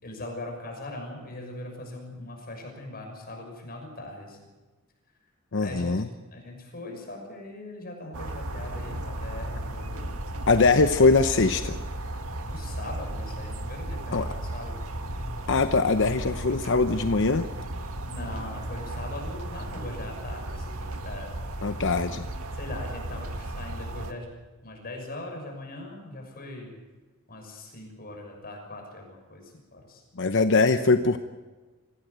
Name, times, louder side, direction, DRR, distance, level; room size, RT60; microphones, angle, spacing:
voice 1, 0.0-4.4 5.6-6.0 6.3-10.1 12.4-14.8 18.0-21.3 21.6-21.7 22.5-26.7 27.3-30.0, left 1 dB, 45° left, 2 dB, 6.4 m, -40 dB
voice 2, 5.5-6.1 10.5-11.8 14.1-14.3 15.5-17.5 21.6-22.3 30.2-31.2, left 3 dB, 60° left, 8 dB, 0.9 m, -22 dB
sound 1, 8.1-24.1, right 1 dB, 80° right, 1.9 m, -35 dB
25.0 x 16.5 x 8.2 m, 1.3 s
head